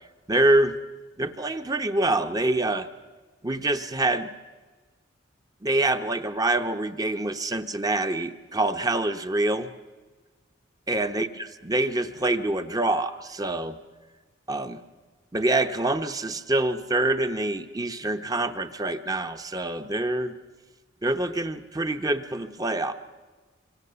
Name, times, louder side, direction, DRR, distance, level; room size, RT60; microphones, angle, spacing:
voice 1, 0.3-0.8 1.2-2.9 3.4-4.3 5.6-9.7 10.9-13.8 14.5-14.8 15.3-20.3 21.0-22.9, right 2 dB, 20° right, 9 dB, 0.8 m, -26 dB
25.5 x 25.0 x 6.9 m, 1.3 s
head